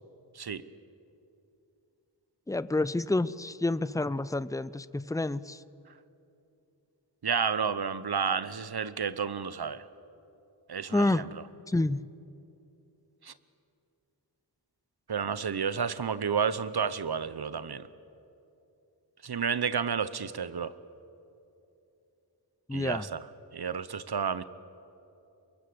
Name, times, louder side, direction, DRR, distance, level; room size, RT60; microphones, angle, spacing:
voice 1, 2.5-5.6 10.9-11.3 11.7-12.1 22.7-23.1, left 2 dB, 10° left, 17 dB, 0.5 m, -29 dB
voice 2, 7.2-9.8 10.7-11.0 13.2-13.3 15.1-17.8 19.2-20.7 22.7-23.2 23.5-24.4, right 6 dB, 60° right, 15 dB, 0.9 m, -31 dB
25.0 x 22.5 x 7.9 m, 2.8 s
wide cardioid pair, 75°, 44 cm